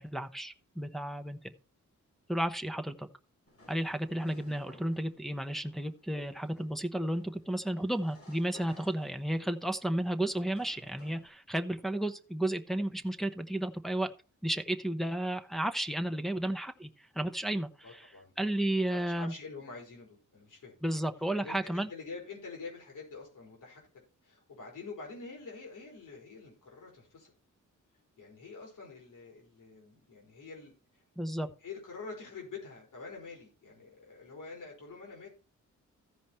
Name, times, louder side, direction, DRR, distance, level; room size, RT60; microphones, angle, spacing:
voice 1, 0.0-1.5 2.3-3.1 3.7-14.1 14.4-18.1 18.4-19.3 20.8-21.9 31.2-31.5, right 1 dB, ahead, 5 dB, 0.9 m, -33 dB
sound 1, 3.5-11.3, left 2 dB, 45° left, 4.4 m, -58 dB
voice 2, 17.8-18.3 18.9-20.8 21.3-23.8 24.2-27.3 28.2-30.7 31.6-35.3, left 4 dB, 80° left, -1 dB, 4.3 m, -46 dB
15.0 x 5.1 x 4.3 m, 0.35 s
cardioid pair, 100°, 31 cm